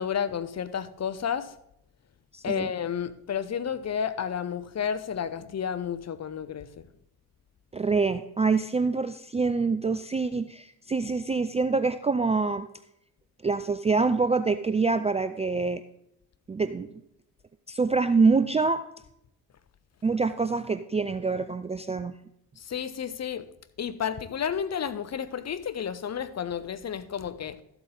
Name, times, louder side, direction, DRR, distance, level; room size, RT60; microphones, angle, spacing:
voice 1, 0.0-1.5 2.4-6.9 22.6-23.5 23.8-27.6, left 8 dB, 35° left, 0.8 m, -31 dB
voice 2, 2.3-2.7 7.7-12.7 13.4-15.8 16.5-16.9 17.7-18.8 20.0-22.1, right 4 dB, 15° right, 0.4 m, -25 dB
13.0 x 8.0 x 3.8 m
hypercardioid pair, 50°, 47 cm